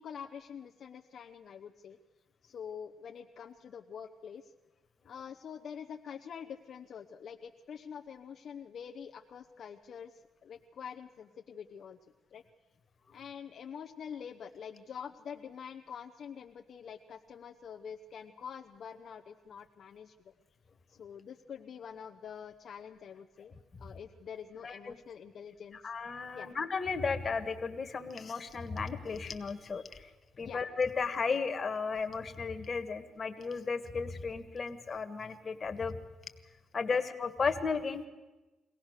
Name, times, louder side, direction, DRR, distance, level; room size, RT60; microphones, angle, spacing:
voice 1, 0.0-2.0 2.4-4.5 5.0-12.0 12.3-12.4 13.1-20.3 20.9-23.5 23.8-25.9 26.3-26.5 30.4-30.6, left 7 dB, 60° left, 4 dB, 0.8 m, -46 dB
voice 2, 24.6-24.9 25.8-30.1 30.4-36.0 36.7-38.0, left 5 dB, 40° left, 8 dB, 1.6 m, -34 dB
23.0 x 17.5 x 6.6 m, 1.2 s
cardioid pair, 90°, 0 cm